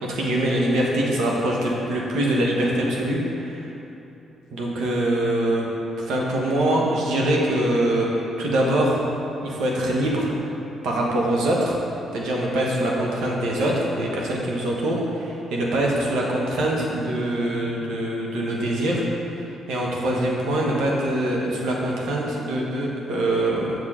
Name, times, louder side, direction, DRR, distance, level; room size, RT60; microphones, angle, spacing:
voice 1, 0.0-3.7 4.5-5.7 6.1-8.1 8.4-9.0 9.4-10.3 10.8-11.8 12.1-19.0 19.7-23.7, right 1 dB, 85° right, -3 dB, 1.1 m, -23 dB
7.5 x 5.0 x 3.7 m, 2.9 s
cardioid pair, 90°, 0 cm